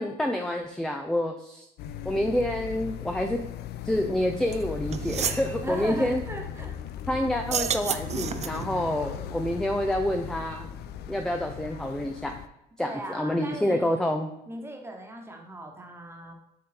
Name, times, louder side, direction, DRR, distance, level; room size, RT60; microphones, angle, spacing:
voice 1, 0.0-1.7 2.0-3.4 3.8-6.2 7.1-10.7 11.1-12.3 12.8-14.3, left 1 dB, 5° left, 4 dB, 0.5 m, -28 dB
sound 1, 1.8-12.5, left 8 dB, 75° left, 0.5 m, -38 dB
sound 2, 4.5-4.6 4.9-5.5 7.4-8.7, right 8 dB, 40° right, 0.5 m, -30 dB
voice 2, 5.6-6.8 12.8-14.0 14.5-16.3, right 2 dB, 15° right, 2 dB, 1.4 m, -38 dB
7.5 x 3.7 x 4.4 m, 0.85 s
cardioid pair, 110°, 17 cm